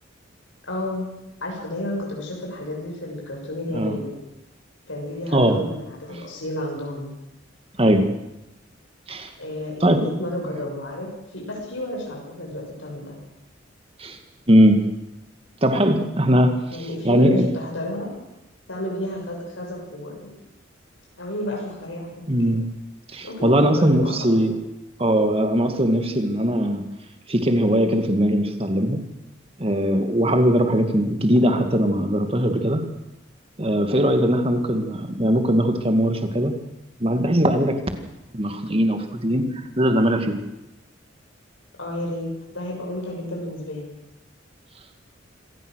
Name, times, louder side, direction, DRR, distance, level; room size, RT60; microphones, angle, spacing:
voice 1, 0.7-1.1 1.4-4.2 4.9-7.1 9.4-13.2 16.7-18.1 18.7-20.4 21.2-22.6 23.2-24.4 41.8-43.9, left 1 dB, 90° left, -1 dB, 6.8 m, -31 dB
voice 2, 5.3-5.6 7.8-8.1 9.1-9.3 9.8-10.1 14.0-14.2 14.5-14.8 15.6-16.6 17.0-17.5 22.3-22.6 23.1-24.5 25.0-26.8 27.3-29.0 29.6-32.8 33.6-36.5 37.0-37.8 38.3-40.4, equal, 30° right, 6 dB, 2.2 m, -20 dB
26.0 x 17.0 x 6.5 m, 0.91 s
head